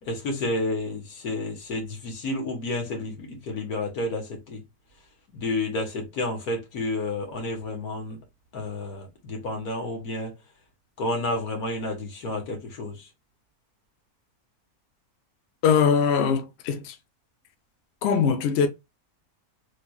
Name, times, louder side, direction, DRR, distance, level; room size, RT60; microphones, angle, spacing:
voice 1, 0.0-4.6 5.3-8.2 8.5-10.3 11.0-13.1, left 2 dB, 80° left, 1.8 m, -30 dB
voice 2, 15.6-17.0 18.0-18.7, left 6 dB, 60° left, 0.7 m, -21 dB
3.4 x 3.2 x 2.2 m
omnidirectional pair, 1.6 m